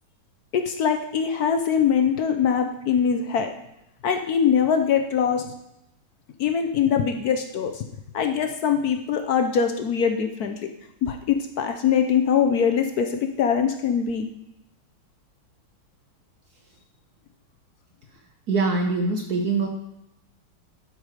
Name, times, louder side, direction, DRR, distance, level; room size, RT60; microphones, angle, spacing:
voice 1, 0.5-3.5 4.0-5.4 6.4-7.8 8.1-10.7 11.0-14.3, left 7 dB, 65° left, 6 dB, 1.0 m, -22 dB
voice 2, 18.5-19.7, right 3 dB, 55° right, 2 dB, 1.2 m, -23 dB
12.0 x 4.8 x 4.9 m, 0.81 s
omnidirectional pair, 2.3 m